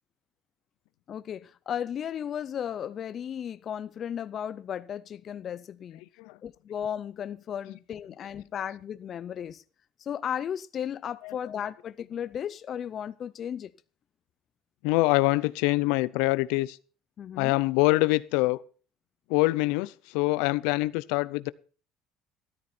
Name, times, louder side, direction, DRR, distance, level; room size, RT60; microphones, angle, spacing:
voice 1, 1.1-6.0 6.4-9.6 10.0-13.7 17.2-17.6, left 9 dB, 35° left, 0.5 m, -35 dB
voice 2, 14.8-16.8 17.4-18.6 19.3-21.5, left 21 dB, 85° left, 0.6 m, -25 dB
13.5 x 13.0 x 4.3 m
cardioid pair, 155°, 0 cm